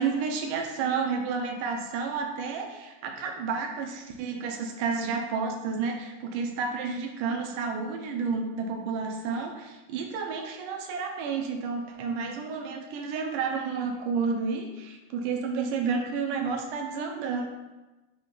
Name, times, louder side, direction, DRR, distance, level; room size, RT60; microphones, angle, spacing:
voice 1, 0.0-17.5, right 5 dB, 85° right, 3 dB, 2.2 m, -31 dB
5.4 x 3.8 x 5.3 m, 1.1 s
omnidirectional pair, 3.7 m